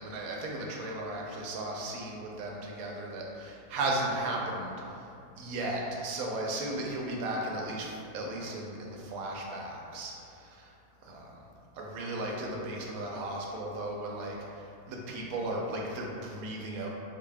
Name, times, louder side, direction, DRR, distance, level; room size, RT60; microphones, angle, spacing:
voice 1, 0.0-4.8 5.4-10.7 11.0-11.3 11.7-16.9, right 1 dB, 70° right, -1 dB, 1.0 m, -35 dB
3.9 x 2.1 x 3.4 m, 2.6 s
omnidirectional pair, 1.6 m